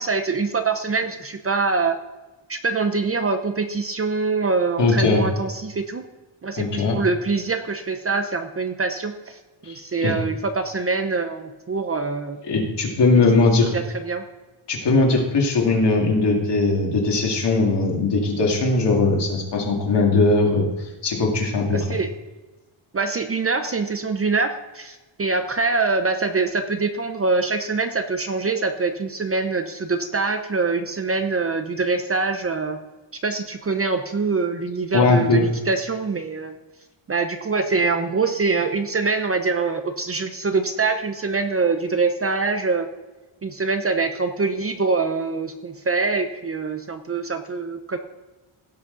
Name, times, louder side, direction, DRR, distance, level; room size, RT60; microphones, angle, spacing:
voice 1, 0.0-2.0 2.5-6.0 6.4-12.4 13.3-13.4 13.7-14.2 21.7-22.1 22.9-32.8 33.2-36.5 37.1-42.9 43.4-48.0, right 4 dB, 30° right, 8 dB, 0.6 m, -24 dB
voice 2, 4.8-5.2 6.6-7.0 9.7-10.1 12.5-13.7 14.7-20.7 21.0-21.8 34.9-35.4, left 3 dB, 55° left, 0 dB, 2.4 m, -19 dB
16.5 x 6.1 x 3.9 m, 1.1 s
wide cardioid pair, 145°, 49 cm